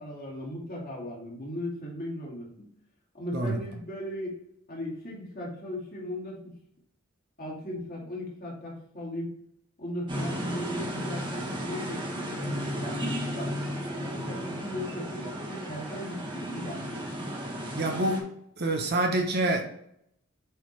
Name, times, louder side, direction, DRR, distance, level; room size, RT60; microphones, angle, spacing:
voice 1, 0.0-2.7 3.1-4.4 4.7-6.6 7.4-9.3 9.8-13.5 14.0-17.0, left 1 dB, 40° left, 2.3 m, -37 dB
sound 1, 10.1-18.2, equal, 20° right, 1.2 m, -34 dB
voice 2, 17.7-18.3 18.6-19.6, right 2 dB, 50° right, 1.0 m, -26 dB
7.7 x 3.7 x 3.3 m
head